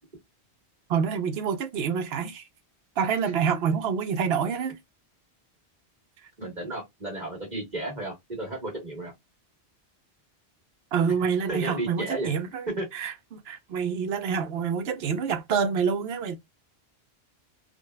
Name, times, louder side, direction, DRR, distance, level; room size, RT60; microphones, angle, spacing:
voice 1, 0.9-2.4 3.0-4.8 10.9-16.4, right 6 dB, 70° right, 0.8 m, -27 dB
voice 2, 6.4-9.1 11.5-12.3 12.8-12.9, right 2 dB, 40° right, 1.5 m, -33 dB
3.6 x 2.2 x 2.2 m
omnidirectional pair, 1.1 m